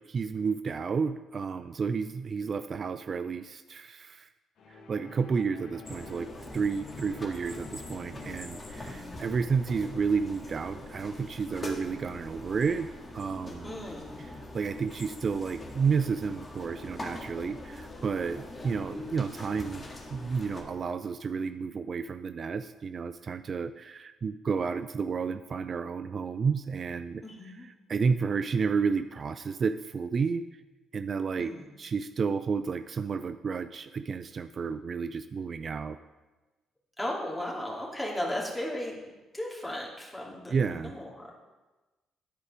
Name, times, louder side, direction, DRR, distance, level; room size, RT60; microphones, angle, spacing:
voice 1, 0.1-4.3 4.7-13.7 14.2-19.9 20.1-30.4 30.9-31.5 31.8-36.0 40.5-40.9, right 5 dB, 45° right, 11 dB, 0.3 m, -31 dB
sound 1, 4.6-9.2, left 3 dB, 60° left, 1.3 m, -49 dB
sound 2, 5.8-20.6, left 1 dB, 25° left, 1.7 m, -43 dB
voice 2, 8.8-9.2 13.6-14.3 27.2-27.7 31.4-31.7 37.0-39.0 39.3-41.3, left 1 dB, 5° left, -4 dB, 2.6 m, -36 dB
10.0 x 4.7 x 4.9 m, 1.2 s
supercardioid pair, 60°, 0 cm